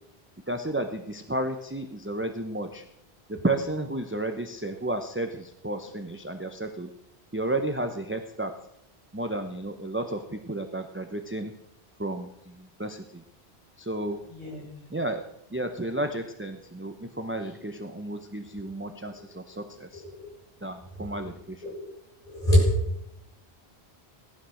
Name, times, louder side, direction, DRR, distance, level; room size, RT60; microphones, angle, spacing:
voice 1, 0.5-2.8 3.3-6.9 7.3-8.5 9.1-11.5 12.0-13.2 13.8-14.3 14.9-20.0 20.6-21.6, right 1 dB, 10° right, 6 dB, 0.9 m, -32 dB
voice 2, 22.2-22.7, equal, 35° left, -5 dB, 8.1 m, -24 dB
17.5 x 12.5 x 6.4 m, 0.79 s
omnidirectional pair, 1.1 m